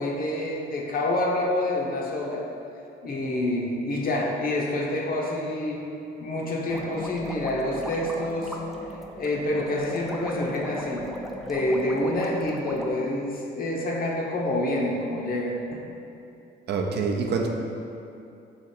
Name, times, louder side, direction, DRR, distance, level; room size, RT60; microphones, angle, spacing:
voice 1, 0.0-2.4 3.0-5.8 6.2-8.6 9.2-11.0 11.4-15.8, left 1 dB, 45° left, -2 dB, 0.7 m, -27 dB
sound 1, 6.7-12.9, equal, ahead, 0.4 m, -37 dB
voice 2, 16.7-17.5, right 4 dB, 60° right, 2 dB, 0.5 m, -26 dB
4.9 x 2.5 x 4.2 m, 2.7 s
cardioid pair, 90°, 20 cm